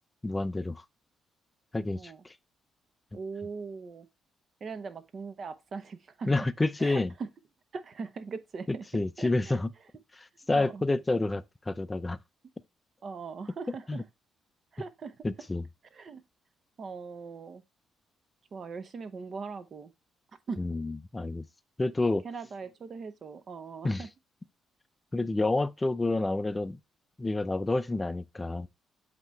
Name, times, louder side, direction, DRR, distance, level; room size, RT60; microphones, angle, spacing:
voice 1, 0.2-0.8 1.7-2.3 6.3-7.1 8.9-9.7 10.5-12.2 13.9-14.0 15.2-15.6 20.6-21.4 21.8-22.3 23.8-24.0 25.1-26.8 27.2-28.7, left 2 dB, 20° left, 0.5 m, -29 dB
voice 2, 1.9-2.2 3.1-4.1 4.6-6.3 6.8-7.3 7.7-9.6 10.5-10.8 13.0-14.0 14.7-15.3 15.9-16.2 16.8-17.6 18.5-19.9 20.5-20.6 22.2-24.1, right 5 dB, 50° right, 0.9 m, -40 dB
7.9 x 2.9 x 4.4 m
cardioid pair, 90°, 0 cm